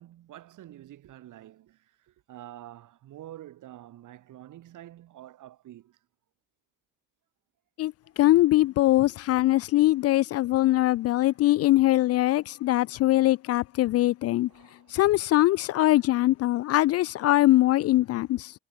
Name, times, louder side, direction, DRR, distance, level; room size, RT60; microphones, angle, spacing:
voice 1, 0.0-6.0 8.0-8.1 14.5-14.9, right 13 dB, 60° right, 2.6 m, -47 dB
voice 2, 7.8-14.5 14.9-18.5, left 16 dB, 45° left, 0.4 m, -22 dB
hypercardioid pair, 50°, 35 cm